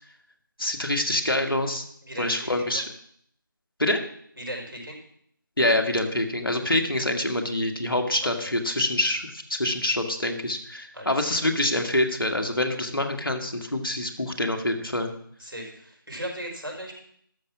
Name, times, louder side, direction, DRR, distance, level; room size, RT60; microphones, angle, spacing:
voice 1, 0.6-1.8 2.2-2.8 3.8-4.0 5.6-15.1, left 1 dB, 80° left, 5 dB, 2.0 m, -26 dB
voice 2, 2.0-2.8 4.4-5.0 8.2-8.5 10.9-11.5 15.4-16.9, equal, 90° right, 0 dB, 4.8 m, -37 dB
12.5 x 6.0 x 7.2 m, 0.65 s
figure-of-eight pair, 165°, 12 cm